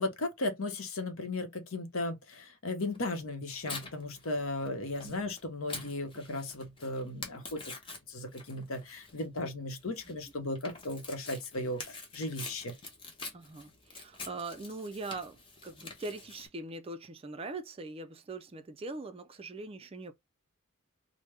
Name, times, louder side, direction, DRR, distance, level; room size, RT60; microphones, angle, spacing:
voice 1, 0.0-7.7 8.1-12.7, left 2 dB, 70° left, 0.8 m, -36 dB
Tearing, 2.9-16.5, left 3 dB, 25° left, 0.7 m, -46 dB
voice 2, 13.3-20.1, right 3 dB, 25° right, 0.4 m, -42 dB
3.3 x 2.1 x 3.2 m
head